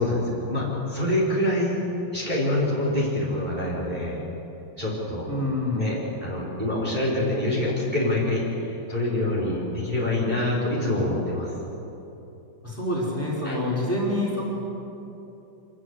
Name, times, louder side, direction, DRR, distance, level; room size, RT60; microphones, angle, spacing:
voice 1, 0.0-1.8 2.1-4.2 4.8-5.3 5.7-11.5 13.4-13.6, left 1 dB, 20° right, -5 dB, 4.8 m, -26 dB
voice 2, 5.3-5.9 12.6-14.4, left 1 dB, 5° left, -4 dB, 4.9 m, -26 dB
25.5 x 19.5 x 8.0 m, 3.0 s
omnidirectional pair, 2.2 m